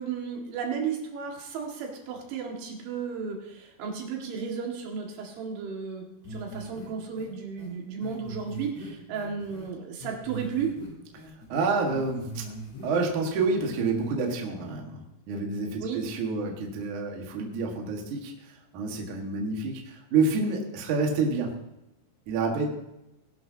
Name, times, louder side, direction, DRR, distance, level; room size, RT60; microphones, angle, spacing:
voice 1, 0.0-10.7 15.8-16.0, right 6 dB, 75° right, 0 dB, 4.3 m, -34 dB
sound 1, 6.2-6.9 7.2-7.3 7.6-7.7 8.0-9.7 10.0-10.9 11.2-12.9 13.1-13.6 13.9-14.1, right 1 dB, 70° left, 6.7 m, -41 dB
voice 2, 11.5-12.5 12.8-21.6 22.3-22.7, right 4 dB, 55° right, 1 dB, 2.5 m, -28 dB
20.5 x 11.5 x 2.8 m, 0.89 s
omnidirectional pair, 5.5 m